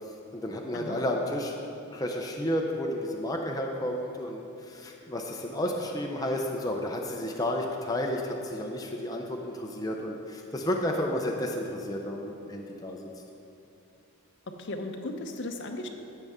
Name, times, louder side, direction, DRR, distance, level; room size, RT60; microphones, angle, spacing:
voice 1, 0.3-1.6 1.9-13.1, left 1 dB, 15° left, 0 dB, 0.6 m, -32 dB
voice 2, 14.6-15.9, left 2 dB, 55° left, 5 dB, 0.8 m, -36 dB
14.5 x 6.8 x 3.6 m, 2.8 s
head